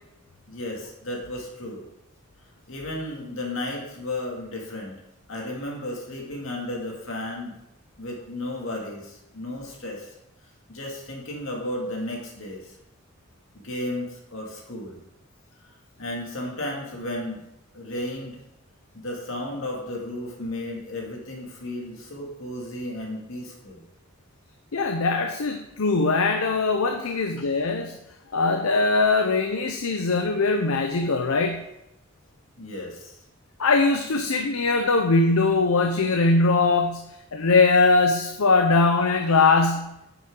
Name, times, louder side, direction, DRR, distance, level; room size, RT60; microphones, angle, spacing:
voice 1, 0.5-1.8 2.7-5.0 5.3-7.6 8.0-10.1 10.7-12.7 13.5-15.0 16.0-17.5 17.7-18.4 18.9-23.8 27.0-27.2 32.6-33.2, left 1 dB, 70° left, -1 dB, 2.3 m, -34 dB
voice 2, 24.7-28.0 28.3-31.7 33.6-40.0, left 3 dB, 85° left, 5 dB, 0.7 m, -21 dB
10.0 x 7.1 x 3.8 m, 0.86 s
head